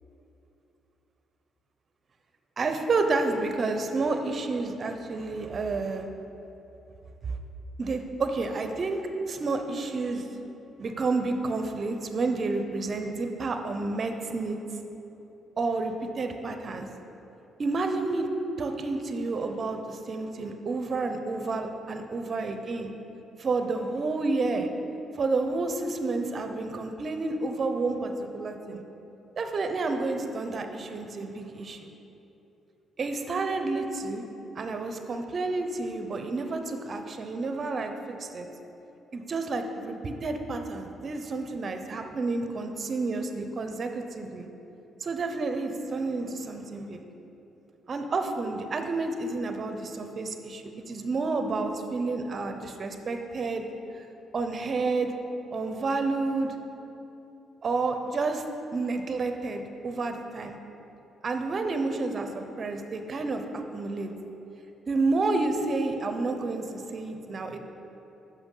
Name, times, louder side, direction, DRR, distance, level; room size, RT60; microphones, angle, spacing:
voice 1, 2.6-6.1 7.2-7.3 7.8-10.3 10.8-14.6 15.6-16.9 17.6-18.3 18.6-22.9 23.4-24.7 25.1-28.8 29.4-31.9 33.0-34.2 34.6-38.5 39.1-44.5 45.0-47.0 47.9-53.6 53.9-54.1 54.3-55.1 55.5-56.5 57.6-58.4 58.7-60.6 61.2-64.1 64.9-67.6, right 3 dB, 45° right, 6 dB, 0.6 m, -30 dB
6.0 x 5.8 x 5.5 m, 3.0 s
cardioid pair, 90°, 0 cm